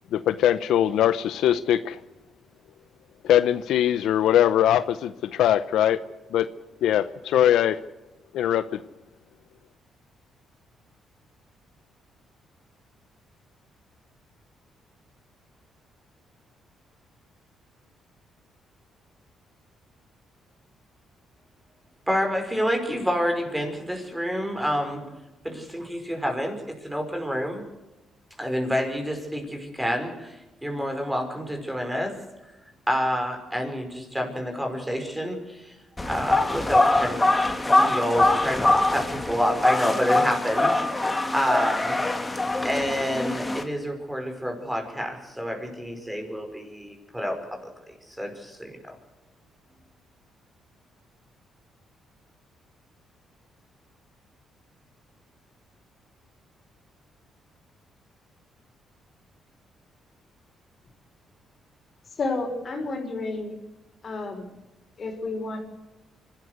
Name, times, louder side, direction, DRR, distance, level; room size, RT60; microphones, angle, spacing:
voice 1, 0.1-2.0 3.2-6.0 6.3-6.5 6.8-7.8 8.3-8.8, left 11 dB, 80° left, 13 dB, 0.7 m, -21 dB
voice 2, 22.1-25.2 25.4-27.6 28.4-32.2 32.9-35.7 36.1-37.3 37.6-42.0 42.6-47.6 48.2-49.0, equal, 5° right, 4 dB, 5.4 m, -28 dB
sound 1, 36.0-43.6, left 2 dB, 15° left, 2.5 m, -23 dB
voice 3, 62.2-63.6 64.0-64.5 65.0-65.6, left 3 dB, 45° left, 4 dB, 5.4 m, -30 dB
25.5 x 13.0 x 8.2 m, 1.0 s
cardioid pair, 90°, 0 cm